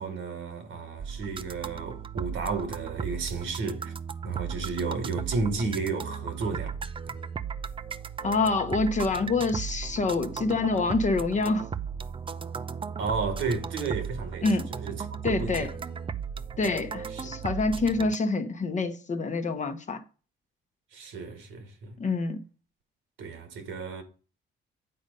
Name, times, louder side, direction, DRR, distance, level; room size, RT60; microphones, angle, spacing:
voice 1, 0.0-3.9 4.2-6.8 7.1-7.2 13.0-14.5 14.8-15.7 17.1-17.3 20.9-22.0 23.2-24.0, right 4 dB, 80° right, 1.6 m, -32 dB
sound 1, 1.0-18.2, right 6 dB, 25° right, 0.4 m, -36 dB
voice 2, 8.2-11.7 14.4-14.7 15.2-15.7 16.6-20.0 22.0-22.4, left 3 dB, 35° left, 0.9 m, -26 dB
8.7 x 4.1 x 5.3 m
cardioid pair, 90°, 20 cm